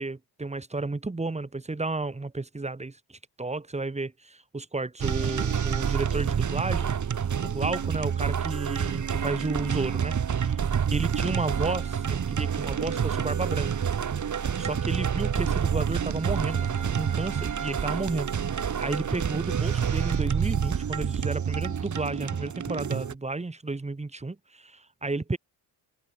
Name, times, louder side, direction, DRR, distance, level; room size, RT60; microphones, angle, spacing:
voice 1, 0.0-3.0 3.4-6.9 7.4-10.6 10.9-13.9 14.6-18.3 18.8-25.4, right 3 dB, 15° right, 3.7 m, -32 dB
sound 1, 5.0-23.2, right 7 dB, 45° right, 4.4 m, -28 dB
cardioid pair, 115°, 42 cm